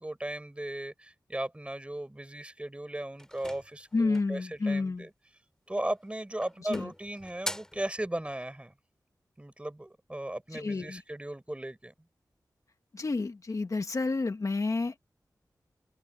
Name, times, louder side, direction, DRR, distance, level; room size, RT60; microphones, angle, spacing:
voice 1, 0.0-5.1 5.7-8.7 9.4-11.9, right 1 dB, 15° right, 5.5 m, -37 dB
sound 1, 3.2-4.4 5.7-6.1 6.4-7.9, left 1 dB, 10° left, 6.6 m, -41 dB
voice 2, 3.9-5.1 6.6-6.9 10.5-11.0 12.9-14.9, left 3 dB, 50° left, 1.3 m, -30 dB
open air
wide cardioid pair, 90°, 7 cm